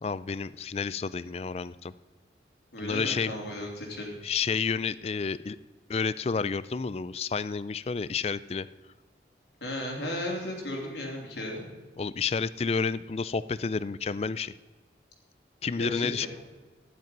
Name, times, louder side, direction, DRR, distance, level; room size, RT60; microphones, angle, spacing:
voice 1, 0.0-1.9 2.8-3.3 4.2-5.6 5.9-8.7 12.0-14.5 15.6-16.3, left 5 dB, 35° left, 17 dB, 0.3 m, -30 dB
voice 2, 2.7-4.2 9.6-11.6 15.8-16.3, left 1 dB, 75° left, -1 dB, 3.3 m, -35 dB
12.0 x 10.5 x 5.3 m, 1.3 s
head